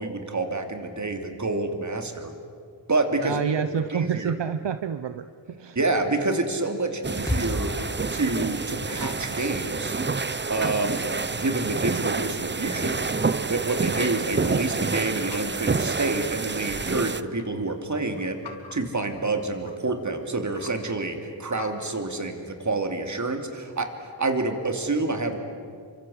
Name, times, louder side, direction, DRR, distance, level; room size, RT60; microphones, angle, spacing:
voice 1, 0.0-2.3 2.9-3.4 3.9-4.3 5.7-7.7 8.1-9.9 10.5-11.1 11.3-13.1 13.4-18.4 18.7-23.9 24.2-25.4, right 2 dB, 40° right, 5 dB, 3.1 m, -28 dB
voice 2, 3.2-5.8, right 7 dB, 70° right, 11 dB, 0.9 m, -28 dB
sound 1, 7.0-17.2, right 4 dB, 25° right, 0.8 m, -28 dB
sound 2, 7.3-11.5, left 1 dB, 10° left, 6.5 m, -35 dB
sound 3, 17.2-21.8, left 4 dB, 65° left, 3.5 m, -49 dB
29.5 x 25.0 x 8.1 m, 2.2 s
wide cardioid pair, 100°, 44 cm